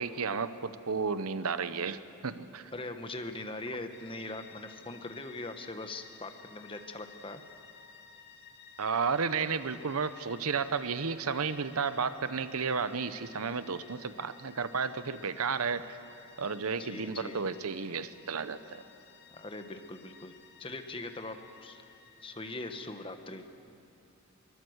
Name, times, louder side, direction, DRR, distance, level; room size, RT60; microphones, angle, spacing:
voice 1, 0.0-2.7 8.8-16.0 16.4-18.8, right 5 dB, 75° right, 13 dB, 0.8 m, -32 dB
voice 2, 2.7-7.4 16.8-17.4 19.4-20.3 20.6-21.8 22.2-23.5, left 2 dB, 25° left, 7 dB, 1.2 m, -41 dB
sound 1, 3.9-23.0, left 6 dB, 50° left, 1.2 m, -55 dB
23.5 x 21.0 x 8.0 m, 2.6 s
head